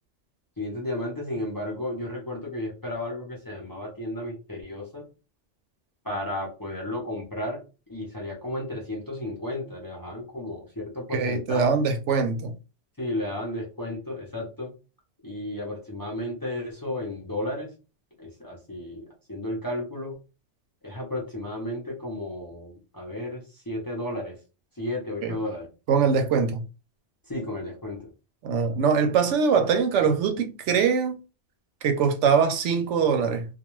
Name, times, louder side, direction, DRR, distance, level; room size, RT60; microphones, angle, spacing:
voice 1, 0.6-5.1 6.0-7.6 7.9-11.7 13.0-14.7 15.2-17.7 18.2-20.2 20.8-24.4 24.8-25.7 27.3-28.1, left 1 dB, 25° left, 0.5 m, -33 dB
voice 2, 11.1-12.5 25.2-25.3 25.9-26.6 28.4-31.2 31.8-33.5, right 6 dB, 80° right, 0.9 m, -22 dB
2.3 x 2.2 x 3.0 m
omnidirectional pair, 1.2 m